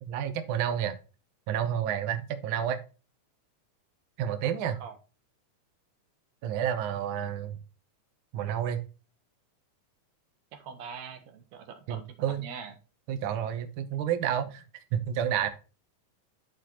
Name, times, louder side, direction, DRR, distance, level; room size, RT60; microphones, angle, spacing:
voice 1, 0.0-1.0 1.5-2.8 4.2-4.8 6.4-7.6 8.3-8.8 11.9-12.5 13.1-15.5, right 9 dB, 85° right, 8 dB, 1.1 m, -30 dB
voice 2, 10.5-12.7, right 6 dB, 65° right, 6 dB, 2.3 m, -43 dB
12.5 x 4.6 x 3.0 m, 0.33 s
omnidirectional pair, 3.7 m